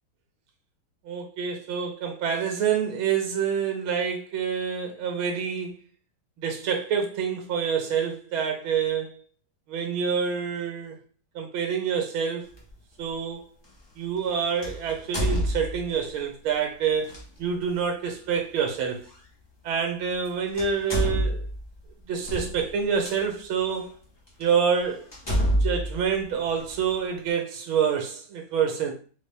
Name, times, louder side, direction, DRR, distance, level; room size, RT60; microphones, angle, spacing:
voice 1, 1.1-5.8 6.4-9.1 9.7-11.0 11.4-12.4 13.0-13.5 14.0-17.1 17.4-19.0 19.6-21.5 22.1-23.9 24.4-25.0 25.6-28.9, right 7 dB, 90° right, 1.7 m, -27 dB
sound 1, 12.5-12.7 14.6-16.1 17.0-17.2 19.1-19.2 20.1-20.3 20.5-23.1 23.8-23.9 24.4-24.5 25.1-26.9, equal, 35° left, 0.4 m, -28 dB
4.0 x 3.5 x 3.3 m
omnidirectional pair, 2.2 m